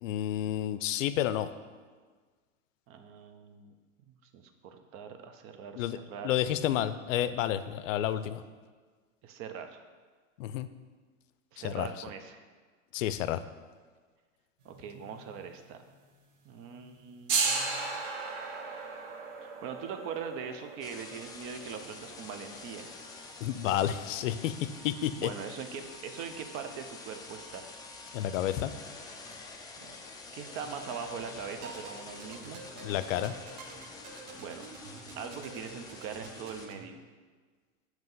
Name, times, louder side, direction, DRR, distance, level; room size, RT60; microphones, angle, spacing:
voice 1, 0.0-1.5 5.7-6.0 6.2-8.4 10.4-10.7 11.6-11.9 12.9-13.4 23.4-25.3 28.1-28.7 32.8-33.3, left 11 dB, 75° left, 13 dB, 0.5 m, -30 dB
voice 2, 2.9-3.7 4.3-6.3 9.2-9.8 11.5-12.4 14.6-15.8 16.4-17.9 19.4-22.9 25.1-27.7 29.8-30.0 30.3-32.6 34.4-34.7 35.2-37.0, right 6 dB, 35° right, 7 dB, 0.6 m, -42 dB
sound 1, 14.7-15.5 15.8-15.9 16.7-23.4, right 4 dB, 75° right, 1.2 m, -36 dB
sound 2, 20.8-36.7, left 3 dB, 10° left, 0.3 m, -47 dB
sound 3, 31.5-36.8, right 4 dB, 60° right, 1.2 m, -48 dB
7.7 x 3.0 x 5.4 m, 1.5 s
supercardioid pair, 125°, 39 cm